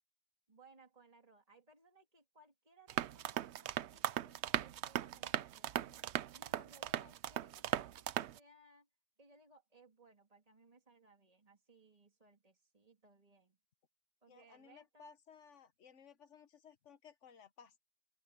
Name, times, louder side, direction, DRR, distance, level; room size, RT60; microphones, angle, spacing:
voice 1, 0.5-8.9 9.2-13.6 14.2-15.1, right 2 dB, 30° right, 3.0 m, -65 dB
sound 1, 2.9-8.4, right 11 dB, 65° right, 0.8 m, -38 dB
voice 2, 14.3-17.8, left 6 dB, 65° left, 1.5 m, -59 dB
open air
omnidirectional pair, 1.3 m